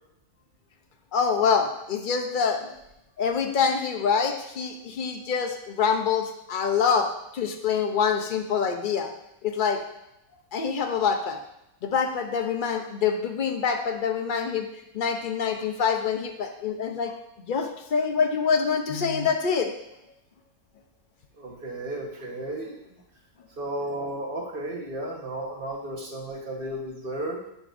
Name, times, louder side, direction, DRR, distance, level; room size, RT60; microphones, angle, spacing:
voice 1, 1.1-2.8 3.2-7.1 7.3-9.1 9.4-9.8 10.5-11.4 11.8-14.7 14.9-17.2 17.4-19.7, left 6 dB, 55° left, 4 dB, 0.5 m, -25 dB
voice 2, 21.4-23.0 23.6-27.4, right 1 dB, 40° right, -1 dB, 1.3 m, -34 dB
9.8 x 5.2 x 2.6 m, 0.83 s
omnidirectional pair, 1.6 m